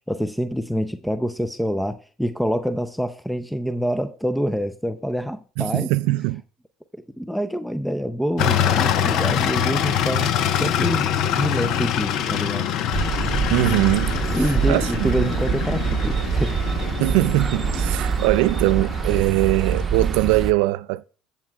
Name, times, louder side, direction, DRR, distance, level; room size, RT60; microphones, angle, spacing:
voice 1, 0.0-5.9 6.9-10.3 10.6-12.7 14.3-16.6, equal, ahead, 0.6 m, -26 dB
voice 2, 5.6-6.4 13.5-14.2 14.7-15.3 17.0-21.0, right 20 dB, 80° right, 0.4 m, -21 dB
sound 1, 8.4-20.1, left 9 dB, 65° left, 0.9 m, -25 dB
sound 2, 12.9-20.5, right 6 dB, 35° right, 0.8 m, -25 dB
14.5 x 7.4 x 2.3 m
supercardioid pair, 95°, 0 cm